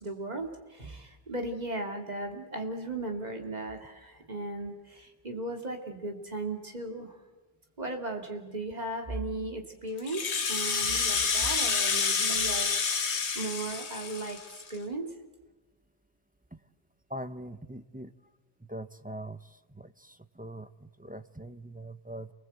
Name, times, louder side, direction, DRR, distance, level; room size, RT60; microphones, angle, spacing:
voice 1, 0.0-7.2 7.8-10.2 10.5-12.7 13.3-14.4 14.7-15.1, right 2 dB, 40° right, 3 dB, 2.8 m, -36 dB
Rattle (instrument), 10.0-14.8, left 5 dB, 90° left, 1.6 m, -29 dB
voice 2, 17.1-18.1 18.7-22.3, right 1 dB, 10° right, 11 dB, 0.6 m, -42 dB
29.5 x 19.5 x 8.0 m, 1.2 s
omnidirectional pair, 1.1 m